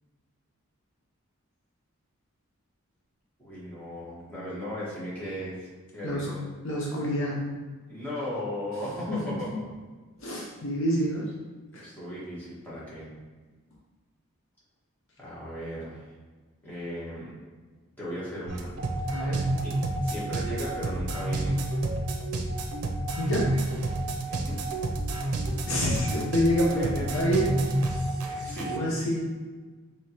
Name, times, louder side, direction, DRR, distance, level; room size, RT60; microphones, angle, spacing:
voice 1, 3.4-6.4 7.9-9.7 11.7-13.1 15.2-16.1 16.6-17.4 18.0-18.7 19.6-19.7 20.0-21.6 24.3-24.6 26.7-27.1 28.4-28.9, equal, 10° left, -9 dB, 1.4 m, -36 dB
voice 2, 6.6-7.4 9.1-9.6 10.2-11.3 11.7-11.8 19.1-19.5 23.2-23.5 25.7-27.5 28.2-29.3, equal, 60° left, -3 dB, 0.7 m, -28 dB
sound 1, 18.5-28.8, right 1 dB, 85° right, 0.5 m, -29 dB
4.8 x 3.0 x 2.9 m, 1.4 s
head